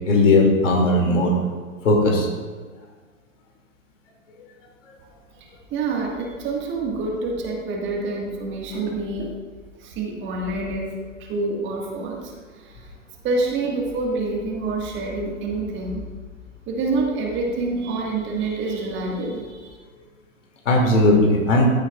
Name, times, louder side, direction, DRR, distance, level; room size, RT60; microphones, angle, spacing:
voice 1, 0.1-1.3 1.8-2.3 20.7-21.7, left 2 dB, 65° left, 0 dB, 2.5 m, -17 dB
voice 2, 5.4-9.3 9.8-10.9 11.2-12.9 13.2-16.0 16.7-19.7, right 3 dB, 30° right, -1 dB, 1.7 m, -27 dB
13.5 x 8.7 x 2.4 m, 1.5 s
figure-of-eight pair, 105°, 40 cm